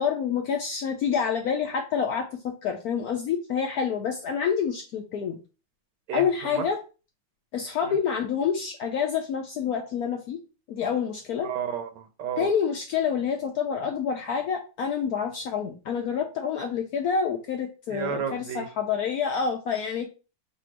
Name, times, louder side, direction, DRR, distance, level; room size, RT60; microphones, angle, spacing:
voice 1, 0.0-5.4 6.1-6.8 7.5-10.4 10.7-11.5 12.4-20.1, left 7 dB, 75° left, 3 dB, 0.9 m, -27 dB
voice 2, 6.1-6.6 7.8-7.9 11.4-12.5 17.9-18.7, right 8 dB, 75° right, 6 dB, 1.2 m, -32 dB
3.3 x 2.6 x 4.4 m, 0.33 s
omnidirectional pair, 2.1 m